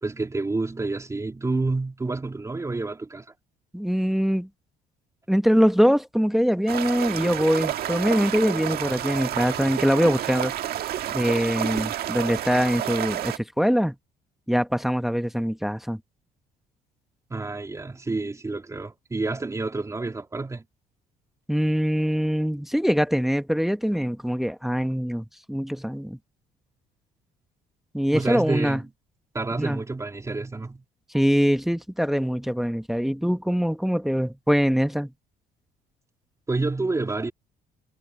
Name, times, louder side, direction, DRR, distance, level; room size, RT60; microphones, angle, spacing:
voice 1, 0.0-3.2 17.3-20.6 28.1-28.9 29.3-30.8 36.5-37.3, right 3 dB, 20° right, 3.1 m, -29 dB
voice 2, 3.7-4.5 5.3-10.5 11.1-13.9 14.5-16.0 21.5-26.2 27.9-28.8 29.6-29.8 31.1-35.1, equal, ahead, 1.2 m, -23 dB
sound 1, 6.7-13.4, right 12 dB, 65° right, 1.7 m, -30 dB
cardioid pair, 110°, 17 cm